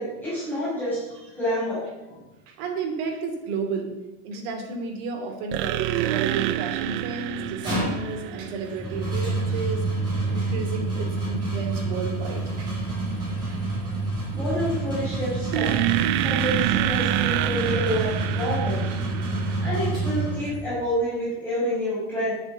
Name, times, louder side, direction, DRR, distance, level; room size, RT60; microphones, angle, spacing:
voice 1, 0.0-2.2 13.9-14.0 14.3-15.8 16.2-18.9 19.6-22.3, equal, 5° left, -10 dB, 5.1 m, -28 dB
voice 2, 2.5-3.9 4.2-9.9 10.3-12.7 13.5-13.6 16.7-16.8 19.5-19.6 20.5-20.6, right 4 dB, 60° right, 3 dB, 2.9 m, -32 dB
sound 1, 5.5-9.2 15.5-19.7, right 15 dB, 40° right, 0.4 m, -27 dB
sound 2, 7.4-20.8, right 2 dB, 15° right, 5.2 m, -28 dB
10.0 x 7.1 x 8.1 m, 1.1 s
cardioid pair, 180°, 30 cm